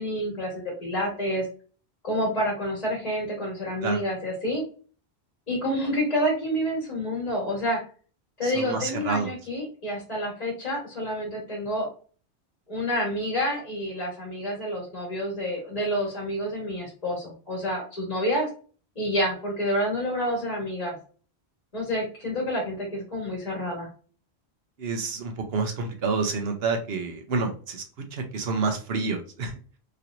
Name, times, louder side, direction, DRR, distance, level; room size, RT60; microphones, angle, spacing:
voice 1, 0.0-1.5 2.0-4.6 5.5-7.8 8.4-11.9 12.7-18.5 18.9-21.0 21.7-23.9, equal, 35° left, -3 dB, 1.4 m, -28 dB
voice 2, 8.4-9.3 24.8-27.8 28.1-29.5, right 4 dB, 70° right, 5 dB, 0.9 m, -28 dB
3.1 x 2.9 x 2.5 m, 0.39 s
omnidirectional pair, 1.1 m